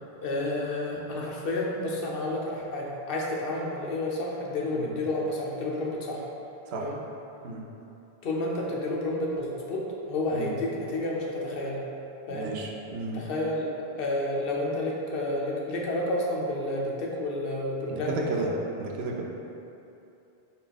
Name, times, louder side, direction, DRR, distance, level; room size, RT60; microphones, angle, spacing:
voice 1, 0.2-6.2 6.7-7.0 8.2-11.8 12.3-12.5 13.1-13.7 14.0-18.5, left 1 dB, 65° left, -3 dB, 0.8 m, -30 dB
voice 2, 12.3-13.2 17.9-18.5 18.8-19.2, right 3 dB, 80° right, -1 dB, 0.8 m, -33 dB
4.0 x 2.4 x 3.9 m, 2.8 s
omnidirectional pair, 1.0 m